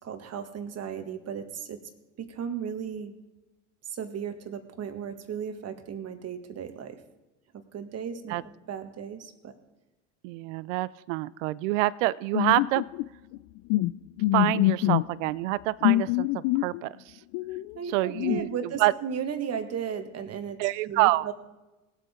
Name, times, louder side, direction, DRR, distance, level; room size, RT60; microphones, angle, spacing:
voice 1, 0.0-1.8 2.2-3.2 3.9-7.0 7.5-8.4 8.7-9.5 17.7-21.3, right 7 dB, 40° right, 7 dB, 1.7 m, -35 dB
voice 2, 10.2-12.8 14.3-17.0 17.9-18.5 18.8-18.9 20.6-21.3, right 19 dB, 75° right, 20 dB, 0.5 m, -26 dB
sound 1, 12.3-13.1 13.3-13.4 13.7-13.9 14.2-15.0 15.8-16.8 17.3-17.8 18.1-18.4, left 18 dB, 55° left, 0.5 m, -25 dB
19.0 x 8.2 x 3.7 m, 1.1 s
hypercardioid pair, 85°, 38 cm